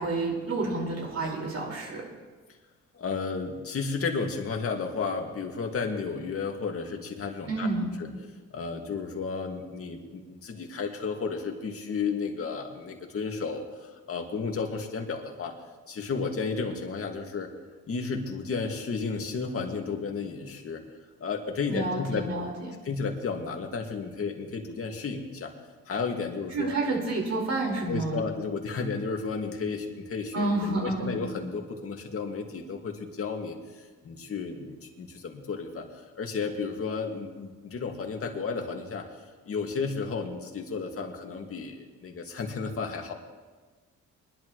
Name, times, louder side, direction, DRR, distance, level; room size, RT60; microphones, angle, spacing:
voice 1, 0.0-2.0 7.5-7.9 21.7-22.7 26.5-28.2 30.3-31.2, right 2 dB, 55° right, -1 dB, 5.1 m, -29 dB
voice 2, 2.9-7.7 8.0-8.1 8.5-15.6 15.9-17.5 17.9-20.8 21.2-22.3 22.8-25.5 25.9-26.9 27.9-35.9 36.2-39.1 39.5-43.1, left 4 dB, 50° left, 2 dB, 2.2 m, -33 dB
22.5 x 11.5 x 3.2 m, 1.4 s
cardioid pair, 90°, 30 cm